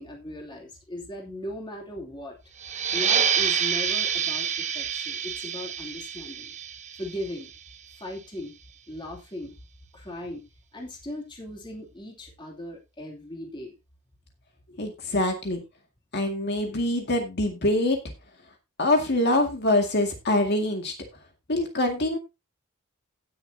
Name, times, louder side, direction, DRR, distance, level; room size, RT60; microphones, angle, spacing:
voice 1, 0.0-2.4 2.9-6.5 7.0-7.5 8.0-8.5 8.9-9.5 9.9-10.4 10.7-13.7, left 1 dB, 20° left, 0 dB, 2.8 m, -38 dB
sound 1, 2.6-7.9, right 8 dB, 35° right, 0.9 m, -27 dB
voice 2, 14.8-15.6 16.1-18.0 18.8-20.9 21.5-22.2, left 1 dB, 50° left, 3 dB, 2.1 m, -24 dB
17.5 x 6.7 x 2.8 m, 0.25 s
head